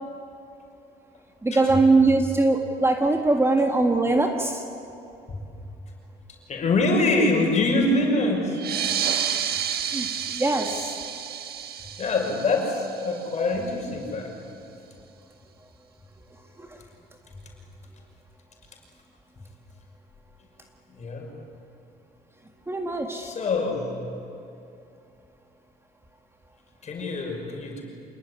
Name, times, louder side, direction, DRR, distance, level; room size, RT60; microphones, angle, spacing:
voice 1, 1.4-4.6 9.9-11.0 16.6-16.8 22.7-23.3, right 3 dB, 15° right, 4 dB, 1.8 m, -22 dB
voice 2, 6.5-8.6 12.0-14.3 20.9-21.3 23.1-24.1 26.8-27.8, left 2 dB, 40° left, 1 dB, 5.9 m, -25 dB
sound 1, 8.5-13.6, right 8 dB, 65° right, 1.8 m, -30 dB
27.0 x 20.0 x 9.7 m, 2.7 s
cardioid pair, 110°, 17 cm